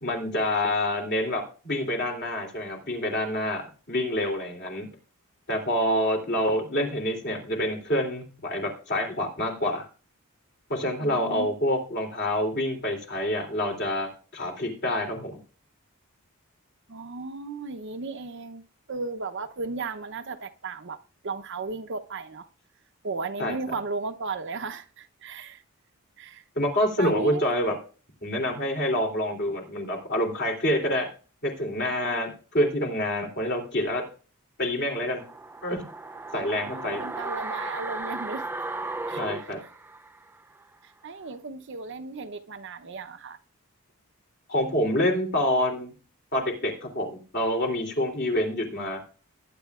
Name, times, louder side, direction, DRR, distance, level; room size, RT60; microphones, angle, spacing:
voice 1, 0.0-4.9 5.5-9.8 10.7-15.4 23.4-23.5 26.5-27.7 28.2-31.1 31.4-34.0 34.6-35.2 35.6-35.9 36.3-37.0 39.1-39.6 44.5-45.9 46.3-49.0, left 1 dB, 50° left, 3.1 m, -27 dB
voice 2, 11.0-11.5 16.9-21.0 21.2-22.5 23.0-25.6 26.2-26.4 27.0-27.5 36.3-38.5 39.1-39.2 41.0-43.4, right 3 dB, 55° right, 0.7 m, -35 dB
sound 1, 35.2-40.3 40.6-40.7, right 2 dB, 10° right, 0.4 m, -35 dB
20.0 x 9.8 x 2.4 m
head